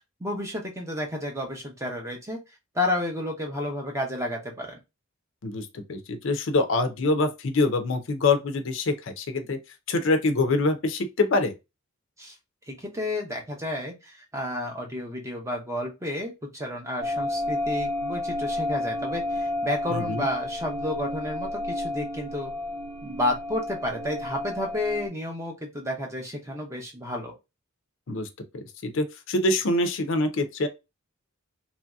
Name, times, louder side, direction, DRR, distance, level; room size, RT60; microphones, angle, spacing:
voice 1, 0.2-2.4 2.7-4.8 12.2-12.3 12.7-22.5 23.0-27.3, left 1 dB, 15° right, 0.6 m, -31 dB
voice 2, 5.4-9.6 9.9-11.5 19.9-20.2 28.1-28.3 28.5-30.7, left 2 dB, 55° left, 0.5 m, -25 dB
sound 1, 17.0-25.1, left 1 dB, 60° right, 0.9 m, -31 dB
3.0 x 2.6 x 2.2 m
head